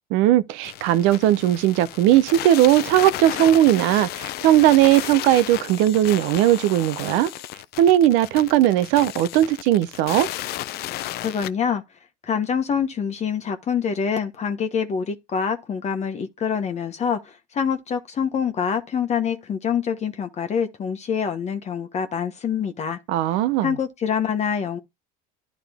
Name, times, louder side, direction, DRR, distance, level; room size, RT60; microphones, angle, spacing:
voice 1, 0.1-7.3 7.8-10.3 23.1-23.7, right 13 dB, 70° right, 0.7 m, -18 dB
sound 1, 0.6-11.5, left 14 dB, 55° left, 0.5 m, -33 dB
voice 2, 11.2-11.8 12.2-23.0 23.6-24.8, left 7 dB, 35° left, 1.2 m, -25 dB
11.0 x 3.8 x 3.5 m
supercardioid pair, 105°, 20 cm